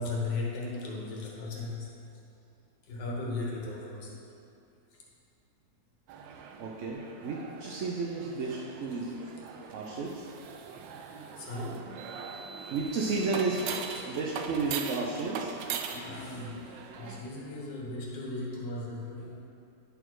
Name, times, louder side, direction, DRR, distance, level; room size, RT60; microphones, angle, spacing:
voice 1, 0.0-2.0 2.8-4.2 4.9-5.0 9.0-9.3 11.4-12.0 13.9-14.1 15.9-19.4, left 2 dB, 80° left, -3 dB, 1.9 m, -37 dB
sound 1, 6.1-17.2, right 6 dB, 90° right, 1.3 m, -41 dB
voice 2, 6.6-9.2 9.7-10.3 12.7-15.5, right 3 dB, 65° right, -3 dB, 0.8 m, -32 dB
9.8 x 4.2 x 4.6 m, 2.6 s
omnidirectional pair, 1.9 m